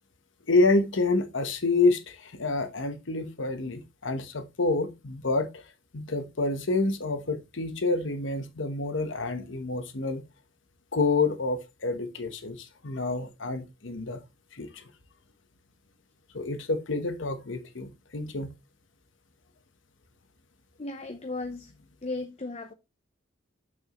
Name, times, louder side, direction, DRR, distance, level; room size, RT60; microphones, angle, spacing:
voice 1, 0.5-5.6 5.9-10.2 10.9-14.2 14.5-14.8 16.3-18.5, left 3 dB, 65° left, 1.1 m, -28 dB
voice 2, 20.8-21.7 22.0-22.7, left 2 dB, 35° left, 0.7 m, -35 dB
7.3 x 6.2 x 3.0 m
head